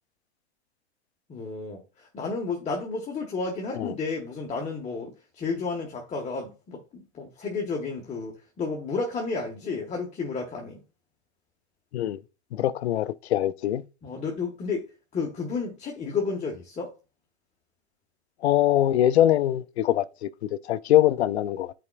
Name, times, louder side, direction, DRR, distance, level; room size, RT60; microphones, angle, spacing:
voice 1, 1.3-10.8 14.0-14.9 15.1-16.9, left 4 dB, 20° left, 1.2 m, -32 dB
voice 2, 12.5-13.9 18.4-20.3 20.6-21.7, left 12 dB, 75° left, 0.5 m, -23 dB
9.5 x 4.4 x 2.3 m
hypercardioid pair, 110°, 34 cm